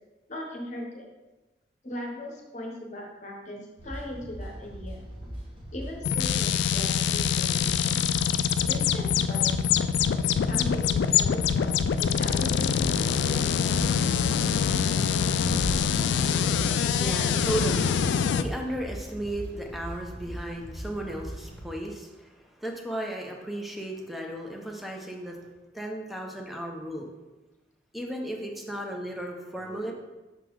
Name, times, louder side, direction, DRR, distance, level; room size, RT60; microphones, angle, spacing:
voice 1, 0.3-1.1 1.8-5.0 5.7-8.0 8.7-9.7 10.5-13.6, left 1 dB, 40° left, 0 dB, 0.9 m, -38 dB
sound 1, 3.8-21.7, equal, 30° right, 1.1 m, -40 dB
sound 2, 6.0-18.4, left 7 dB, 80° left, 0.3 m, -25 dB
voice 2, 15.2-25.4 25.7-27.1 27.9-29.9, right 1 dB, ahead, 0 dB, 0.6 m, -35 dB
sound 3, 15.4-17.1, equal, 70° right, 0.8 m, -37 dB
5.9 x 3.8 x 4.6 m, 1.1 s
head